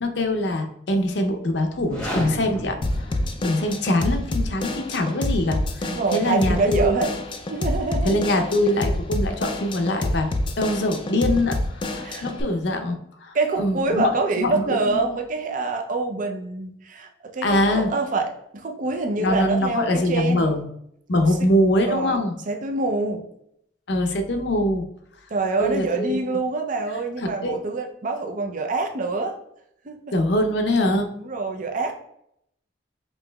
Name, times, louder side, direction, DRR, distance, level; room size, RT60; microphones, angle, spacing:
voice 1, 0.0-7.0 8.0-10.3 10.6-14.1 14.3-15.0 17.4-17.9 19.2-20.6 21.1-22.3 23.9-24.8 25.6-26.2 27.2-27.6 30.1-31.1, left 1 dB, 75° left, 6 dB, 0.6 m, -23 dB
sound 1, 1.8-3.9, equal, 5° left, 0.9 m, -32 dB
Drum kit / Drum, 2.8-12.4, left 1 dB, 30° left, 0.4 m, -27 dB
voice 2, 5.8-7.1 7.5-8.2 12.0-12.3 13.3-20.5 21.3-21.4 21.9-22.2 22.5-23.2 25.3-29.3 29.8-30.0 31.2-31.9, right 3 dB, 45° right, 3 dB, 0.5 m, -26 dB
5.3 x 2.9 x 2.2 m, 0.72 s
head